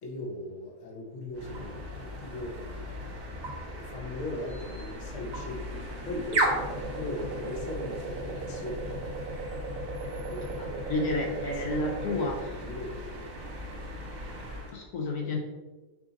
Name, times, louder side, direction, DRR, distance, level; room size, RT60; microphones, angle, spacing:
voice 1, 0.0-2.6 3.0-3.2 3.6-8.9 10.2-10.9 11.3-13.5, left 1 dB, 55° left, 0 dB, 1.1 m, -39 dB
sound 1, 1.3-14.8, right 1 dB, 45° right, 1.2 m, -35 dB
voice 2, 10.8-12.6 14.7-15.4, left 2 dB, 75° left, 0 dB, 1.1 m, -30 dB
4.8 x 2.6 x 3.9 m, 1.2 s
omnidirectional pair, 1.7 m